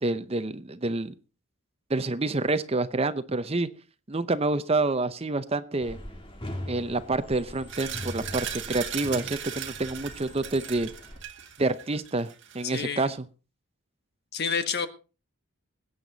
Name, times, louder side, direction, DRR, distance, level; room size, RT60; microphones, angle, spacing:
voice 1, 0.0-1.1 1.9-3.7 4.1-6.0 6.7-10.9 11.6-12.3 12.5-13.2, right 2 dB, 25° right, 12 dB, 0.7 m, -28 dB
sound 1, 5.8-11.2, equal, 25° left, 2.0 m, -41 dB
sound 2, 7.7-12.8, right 9 dB, 55° right, 2.2 m, -38 dB
voice 2, 12.6-13.2 14.3-14.9, left 6 dB, 50° left, 9 dB, 1.4 m, -29 dB
21.5 x 9.0 x 4.0 m, 0.34 s
head